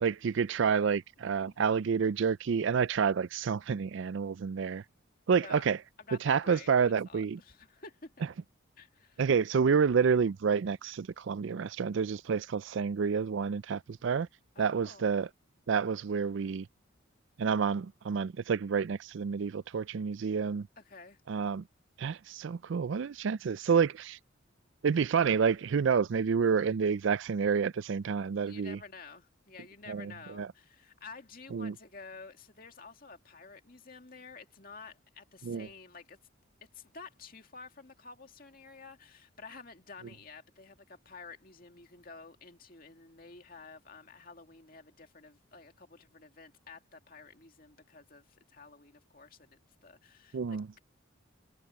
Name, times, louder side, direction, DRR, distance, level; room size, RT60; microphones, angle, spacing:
voice 1, 0.0-4.8 5.3-5.8 6.2-7.4 9.2-14.3 14.6-15.3 15.7-16.7 17.4-20.7 21.3-21.7 22.0-24.2 24.8-28.8 29.9-30.5 31.5-31.7 35.4-35.7 50.3-50.7, right 6 dB, 65° right, 0.4 m, -29 dB
voice 2, 5.3-5.6 6.0-8.1 8.8-9.2 14.6-15.1 20.8-21.2 28.4-36.2 36.6-50.8, left 4 dB, 45° left, 2.3 m, -51 dB
head